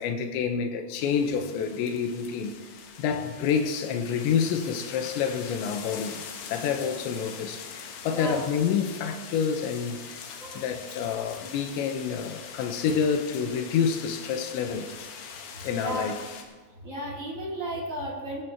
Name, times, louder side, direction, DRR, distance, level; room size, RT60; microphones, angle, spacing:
voice 1, 0.0-2.6 3.0-6.2 6.5-10.2 10.6-14.9 15.6-16.2, left 7 dB, 90° left, 3.3 m, -28 dB
sound 1, 1.0-16.4, left 6 dB, 70° left, 3.2 m, -43 dB
voice 2, 8.1-8.5 10.4-10.7 15.6-16.2 16.8-18.4, right 1 dB, 20° right, 2.9 m, -34 dB
20.0 x 14.5 x 3.0 m
omnidirectional pair, 5.1 m